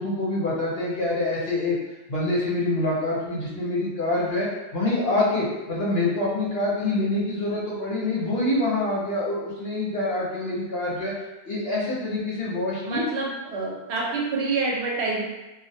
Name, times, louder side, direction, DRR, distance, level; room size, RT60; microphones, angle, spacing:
voice 1, 0.0-1.8 2.1-4.5 4.7-11.1 11.5-13.0, left 2 dB, 65° left, -6 dB, 0.9 m, -26 dB
voice 2, 12.8-15.2, right 3 dB, 75° right, -2 dB, 0.9 m, -27 dB
2.3 x 2.1 x 2.6 m, 1.0 s
omnidirectional pair, 1.1 m